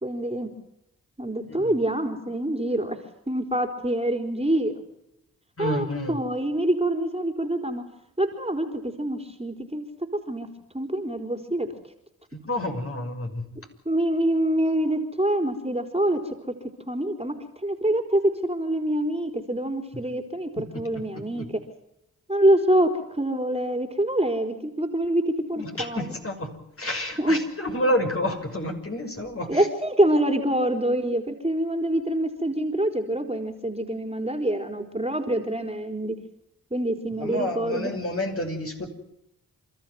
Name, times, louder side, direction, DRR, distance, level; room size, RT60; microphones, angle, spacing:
voice 1, 0.0-0.5 1.2-3.0 3.3-4.8 5.6-7.8 8.2-9.9 10.1-10.5 10.7-11.7 13.9-16.2 16.5-16.6 16.9-21.4 22.3-26.1 27.2-27.4 29.5-36.2 36.7-37.9, right 1 dB, 15° right, 5 dB, 4.1 m, -25 dB
voice 2, 5.6-6.2 12.3-13.5 20.6-20.7 20.9-21.5 25.6-29.7 37.2-38.9, left 1 dB, 35° left, 4 dB, 6.0 m, -29 dB
29.0 x 13.5 x 9.4 m, 0.85 s
supercardioid pair, 45°, 38 cm